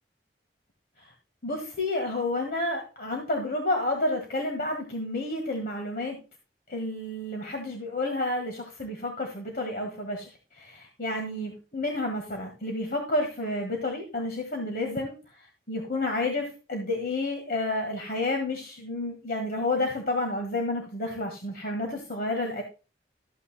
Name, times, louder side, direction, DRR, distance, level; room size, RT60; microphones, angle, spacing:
voice 1, 1.4-6.2 6.7-22.6, left 2 dB, 55° left, 2 dB, 1.7 m, -30 dB
13.5 x 8.6 x 2.2 m, 0.32 s
head